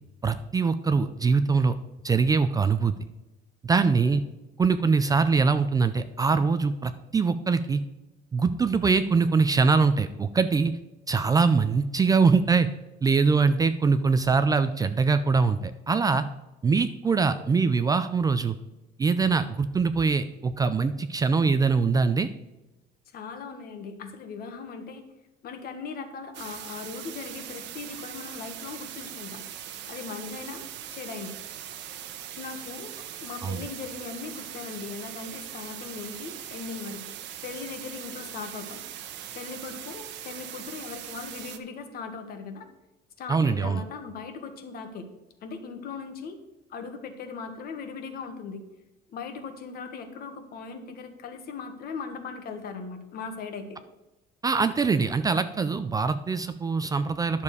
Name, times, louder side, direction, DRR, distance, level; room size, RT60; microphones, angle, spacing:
voice 1, 0.2-1.8 2.0-2.9 3.6-4.2 4.6-7.8 8.3-10.7 11.1-12.7 13.0-16.2 16.6-18.6 19.0-22.3 33.4-33.6 43.3-43.8 54.4-57.4, right 4 dB, 20° right, 11 dB, 0.4 m, -23 dB
voice 2, 23.1-25.0 25.4-29.4 29.9-30.6 30.9-31.3 32.4-32.9 33.2-37.1 37.4-38.8 39.3-42.7 43.2-45.1 45.4-46.4 46.7-48.6 49.1-53.8, left 5 dB, 55° left, 7 dB, 1.5 m, -39 dB
sound 1, 26.3-41.6, right 10 dB, 70° right, 1.1 m, -40 dB
11.0 x 7.0 x 4.8 m, 1.0 s
cardioid pair, 165°, 19 cm